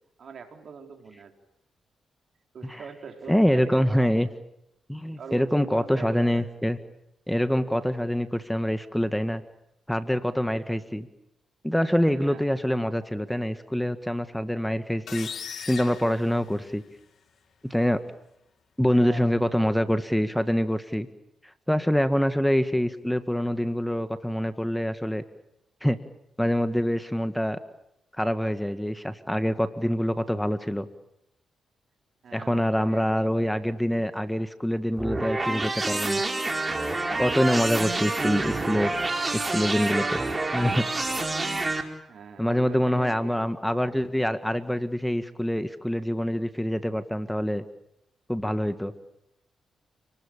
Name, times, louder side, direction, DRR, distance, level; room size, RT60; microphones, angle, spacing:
voice 1, 0.2-1.3 2.5-4.2 5.2-6.4 12.1-12.5 18.8-19.7 32.2-33.1 42.1-43.4, right 6 dB, 65° right, 4 dB, 4.1 m, -42 dB
voice 2, 3.3-4.3 4.9-6.8 7.3-9.4 9.9-11.1 11.6-15.3 15.7-16.8 17.6-18.0 18.8-21.1 21.4-25.2 25.8-26.0 26.4-27.6 28.2-30.9 32.3-36.2 37.2-39.0 39.3-40.2 40.5-40.9 42.4-47.6 48.3-48.9, equal, 5° left, 10 dB, 1.7 m, -25 dB
sound 1, 15.1-17.0, left 6 dB, 65° left, 2.6 m, -39 dB
sound 2, 35.0-41.8, right 2 dB, 25° right, 4.4 m, -28 dB
29.0 x 20.5 x 8.8 m, 0.84 s
supercardioid pair, 55°, 0 cm